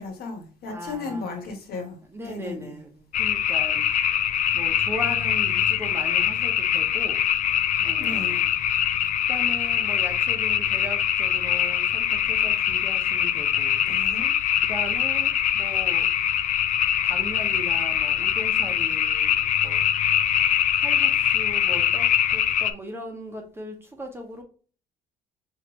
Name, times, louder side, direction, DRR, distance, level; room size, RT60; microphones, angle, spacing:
voice 1, 0.0-2.8 7.9-8.4 13.8-14.3, left 3 dB, 65° left, 1.4 m, -35 dB
voice 2, 0.7-1.4 2.1-4.1 4.5-7.2 7.8-8.5 9.3-13.8 14.6-16.1 17.0-19.3 19.6-19.8 20.7-24.4, equal, 15° right, 1.0 m, -38 dB
sound 1, 3.1-22.7, left 10 dB, 50° left, 0.4 m, -23 dB
4.4 x 3.2 x 3.0 m
cardioid pair, 110°, 17 cm